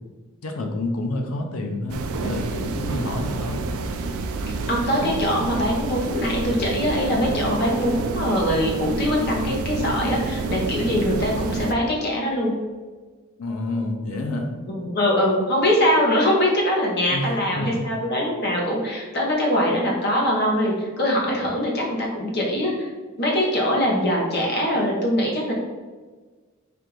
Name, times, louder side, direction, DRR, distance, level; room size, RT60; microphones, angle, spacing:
voice 1, 0.4-3.6 13.4-14.5 17.1-17.9, left 1 dB, 80° left, 3 dB, 0.6 m, -28 dB
sound 1, 1.9-11.7, right 3 dB, 85° right, 0.4 m, -28 dB
voice 2, 4.7-12.5 14.7-22.9 23.2-25.5, equal, 50° left, -2 dB, 0.9 m, -22 dB
3.4 x 2.5 x 4.5 m, 1.4 s
head